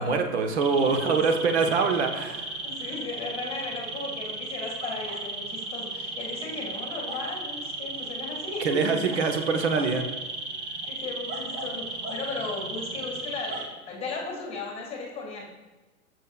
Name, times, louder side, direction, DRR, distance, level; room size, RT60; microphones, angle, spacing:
voice 1, 0.0-2.4 8.6-10.0, right 4 dB, 50° right, 5 dB, 1.0 m, -24 dB
sound 1, 0.6-13.7, right 2 dB, 20° right, 0.7 m, -35 dB
voice 2, 2.6-8.9 10.8-15.4, left 3 dB, 15° left, -1 dB, 2.0 m, -36 dB
13.0 x 6.3 x 2.4 m, 1.2 s
figure-of-eight pair, 115°, 43 cm